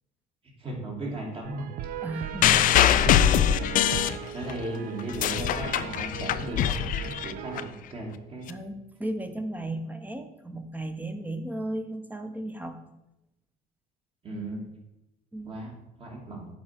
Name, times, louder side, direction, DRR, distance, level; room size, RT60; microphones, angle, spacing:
voice 1, 0.6-1.7 2.9-3.2 4.1-8.5 14.2-14.6 15.5-15.7 16.0-16.5, right 2 dB, 35° right, -1 dB, 2.5 m, -36 dB
sound 1, 1.4-7.7, right 9 dB, 65° right, 0.5 m, -39 dB
voice 2, 2.0-2.7 8.5-12.8 15.3-15.6, right 1 dB, 10° right, 8 dB, 0.9 m, -35 dB
sound 2, 2.4-4.6 5.0-7.6 8.5-8.6, left 10 dB, 60° left, 0.5 m, -22 dB
7.3 x 4.5 x 5.8 m, 0.93 s
cardioid pair, 110°, 16 cm